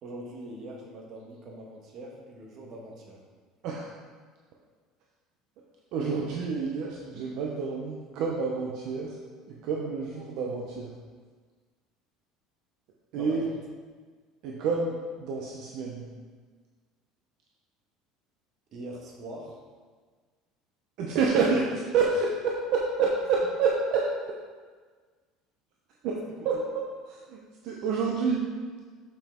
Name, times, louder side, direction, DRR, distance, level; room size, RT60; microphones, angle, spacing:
voice 1, 0.0-3.2 13.1-13.6 18.7-19.6 21.2-21.7 26.4-26.6, right 1 dB, 40° right, -1 dB, 1.3 m, -42 dB
voice 2, 5.9-9.2 9.5-10.9 13.1-13.5 14.4-16.1 21.0-21.6 21.9-24.0 26.0-26.2 26.4-28.4, right 5 dB, 55° right, -2 dB, 0.8 m, -28 dB
6.9 x 5.7 x 3.7 m, 1.5 s
cardioid pair, 160°, 0 cm